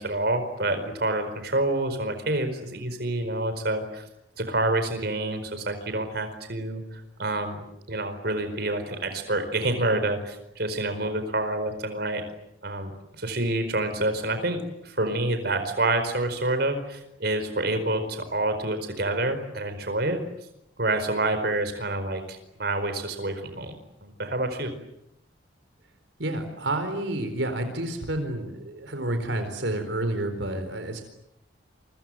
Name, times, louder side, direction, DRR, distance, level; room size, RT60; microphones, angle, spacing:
voice 1, 0.0-4.1 4.4-7.6 7.9-12.2 12.6-20.2 20.8-23.8 24.0-24.7, right 2 dB, 55° right, 8 dB, 4.7 m, -28 dB
voice 2, 26.2-31.0, right 1 dB, 75° right, 7 dB, 4.3 m, -29 dB
29.0 x 25.0 x 7.8 m, 0.80 s
head